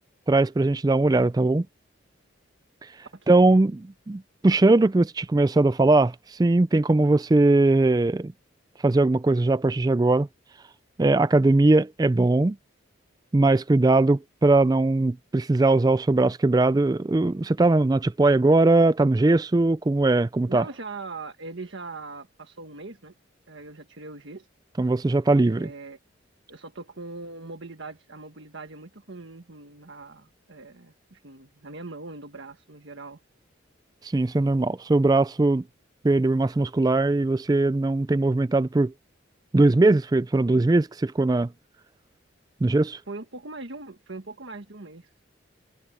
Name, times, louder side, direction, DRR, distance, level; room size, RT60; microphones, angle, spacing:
voice 1, 0.3-1.7 3.3-3.8 4.1-6.1 6.4-8.3 8.8-10.3 11.0-12.6 13.3-20.6 24.8-25.7 34.1-35.6 36.0-38.9 39.5-41.5 42.6-43.0, right 2 dB, 20° right, 0.3 m, -20 dB
voice 2, 3.1-3.6 20.4-23.1 23.5-24.5 25.3-26.0 26.5-33.2 43.1-45.2, right 3 dB, 70° right, 1.5 m, -41 dB
head